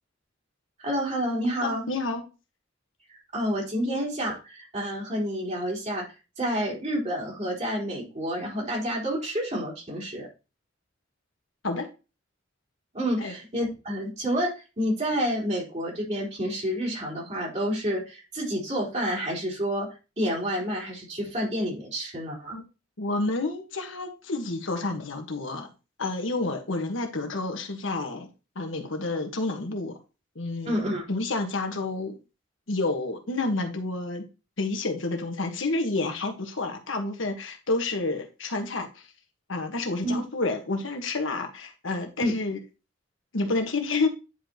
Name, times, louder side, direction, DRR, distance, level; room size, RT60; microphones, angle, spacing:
voice 1, 0.8-1.9 3.3-6.0 6.4-10.3 12.9-14.5 14.8-19.9 20.2-22.6 30.7-31.0 40.0-40.2 42.2-42.3, equal, 35° right, 4.1 m, -29 dB
voice 2, 1.6-2.2 3.9-4.0 11.6-11.9 13.2-13.3 22.5-22.6 23.0-25.7 26.0-28.3 28.5-30.0 30.3-32.2 32.7-34.3 34.6-39.0 39.5-42.6 43.3-44.1, left 2 dB, 80° left, 1.4 m, -29 dB
9.8 x 5.2 x 3.0 m
head